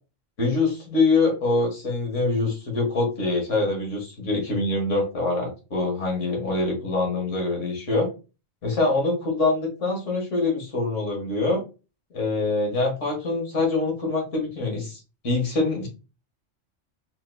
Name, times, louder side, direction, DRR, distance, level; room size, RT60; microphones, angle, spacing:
voice 1, 0.4-8.1 8.6-11.6 12.1-15.0 15.2-15.9, left 3 dB, 70° left, 0 dB, 1.8 m, -24 dB
4.2 x 3.7 x 2.2 m, 0.31 s
omnidirectional pair, 1.3 m